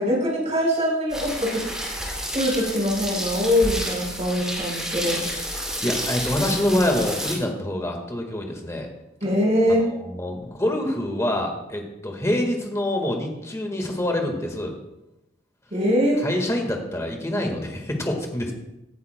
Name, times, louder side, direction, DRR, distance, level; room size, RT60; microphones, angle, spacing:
voice 1, 0.0-1.7 2.3-5.2 9.2-9.8 15.7-16.2, equal, 40° right, -4 dB, 4.6 m, -22 dB
sound 1, 1.1-7.4, equal, 5° right, 2.5 m, -30 dB
voice 2, 5.8-8.9 9.8-14.8 16.2-18.5, left 1 dB, 15° left, 2 dB, 1.6 m, -26 dB
16.5 x 11.0 x 2.2 m, 0.94 s
head